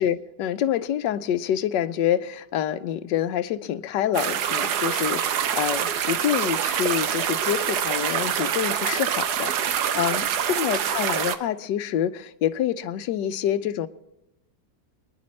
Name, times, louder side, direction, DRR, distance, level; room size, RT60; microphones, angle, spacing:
voice 1, 0.0-13.9, left 10 dB, 90° left, 13 dB, 1.3 m, -27 dB
sound 1, 4.1-11.4, right 9 dB, 70° right, 1.3 m, -25 dB
24.5 x 10.5 x 3.2 m, 0.93 s
omnidirectional pair, 1.9 m